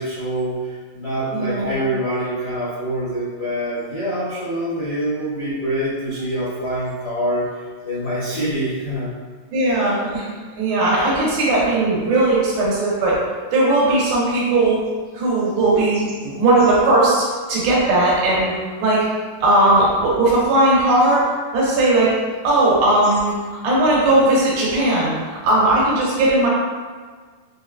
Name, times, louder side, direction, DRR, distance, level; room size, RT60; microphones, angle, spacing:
voice 1, 0.0-7.5 7.8-9.1, right 1 dB, 80° left, -14 dB, 1.0 m, -25 dB
voice 2, 1.3-1.7 9.5-13.2 13.5-14.8 15.1-18.5 18.8-19.1 19.4-21.2 21.5-22.1 22.4-26.5, right 2 dB, 85° right, -6 dB, 2.9 m, -18 dB
6.6 x 2.2 x 2.4 m, 1.5 s
omnidirectional pair, 4.2 m